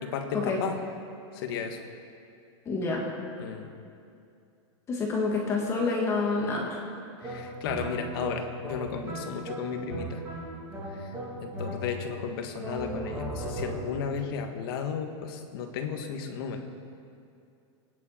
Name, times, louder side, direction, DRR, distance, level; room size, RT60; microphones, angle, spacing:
voice 1, 0.0-0.8 1.3-1.8 3.4-3.7 7.2-10.2 10.9-16.7, left 6 dB, 50° left, 5 dB, 1.5 m, -34 dB
voice 2, 2.7-3.1 4.9-6.8, left 3 dB, 15° left, -1 dB, 1.7 m, -28 dB
sound 1, 7.2-12.2 12.6-14.1, right 1 dB, 10° right, 3.1 m, -37 dB
24.0 x 10.0 x 4.4 m, 2.5 s
supercardioid pair, 170°, 16 cm